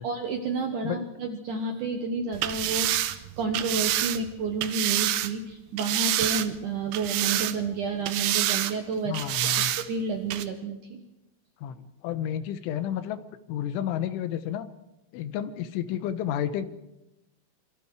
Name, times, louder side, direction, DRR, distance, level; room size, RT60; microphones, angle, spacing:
voice 1, 0.0-11.0, right 4 dB, 70° right, 5 dB, 2.0 m, -31 dB
sound 1, 2.3-5.3 5.8-6.6 6.9-7.8 8.1-8.7 9.1-9.9 10.3-10.4, right 13 dB, 85° right, 2.0 m, -27 dB
voice 2, 9.1-9.7 11.6-13.2 13.5-14.7 15.1-16.7, left 10 dB, 85° left, 12 dB, 3.5 m, -31 dB
26.5 x 24.5 x 4.8 m, 0.96 s
omnidirectional pair, 5.4 m